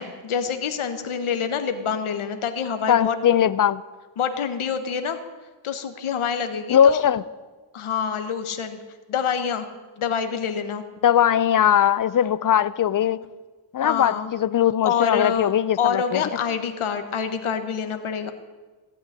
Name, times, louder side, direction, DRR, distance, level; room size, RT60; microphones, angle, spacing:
voice 1, 0.0-3.2 4.2-5.2 5.6-7.0 7.7-8.8 9.1-9.7 10.0-10.8 13.8-14.3 14.8-15.5 15.8-18.3, left 7 dB, 85° left, 8 dB, 1.3 m, -26 dB
voice 2, 2.9-3.8 6.7-7.2 11.0-13.2 13.7-16.2, left 9 dB, 45° left, 17 dB, 0.6 m, -20 dB
15.5 x 6.3 x 9.9 m, 1.3 s
cardioid pair, 90°, 48 cm